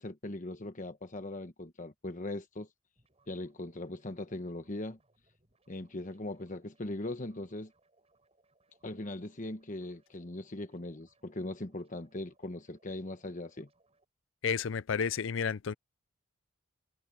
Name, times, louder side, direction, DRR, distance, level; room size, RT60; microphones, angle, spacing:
voice 1, 0.0-2.7 3.3-5.0 5.7-7.7 8.8-13.7, left 1 dB, 40° left, 1.2 m, -40 dB
sound 1, 3.0-14.0, right 2 dB, 30° right, 7.9 m, -72 dB
voice 2, 14.4-15.7, left 6 dB, 65° left, 0.5 m, -31 dB
head